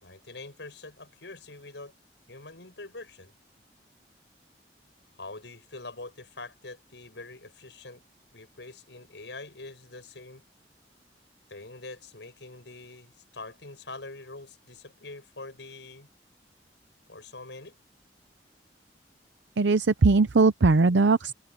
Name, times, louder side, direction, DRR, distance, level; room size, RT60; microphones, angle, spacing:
voice 1, 0.0-1.9 2.3-3.3 5.2-8.0 8.3-10.4 11.5-16.1 17.1-17.8, left 3 dB, 85° left, 5.8 m, -44 dB
voice 2, 19.6-21.3, right 3 dB, 90° right, 0.6 m, -20 dB
head